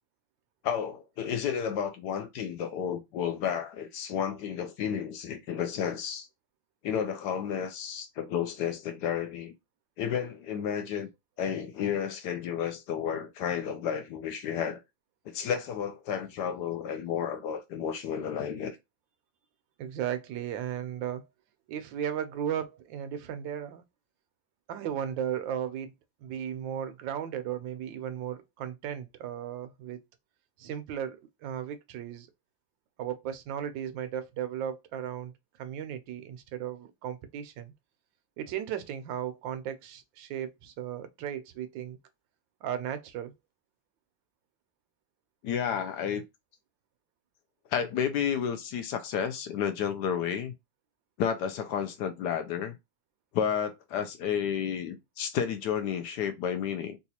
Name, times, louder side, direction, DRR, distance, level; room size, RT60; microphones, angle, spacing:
voice 1, 0.6-6.3 6.8-9.5 10.0-11.1 11.4-14.8 15.3-18.8 45.4-46.2 47.7-50.5 51.2-52.7 53.3-57.0, left 8 dB, 75° left, 1.1 m, -31 dB
voice 2, 19.8-21.3 21.7-23.8 24.7-25.9 26.2-30.0 30.6-32.3 33.0-35.3 35.6-37.7 38.4-42.0 42.6-43.3, right 9 dB, 90° right, 1.4 m, -35 dB
4.0 x 2.4 x 2.8 m
omnidirectional pair, 2.0 m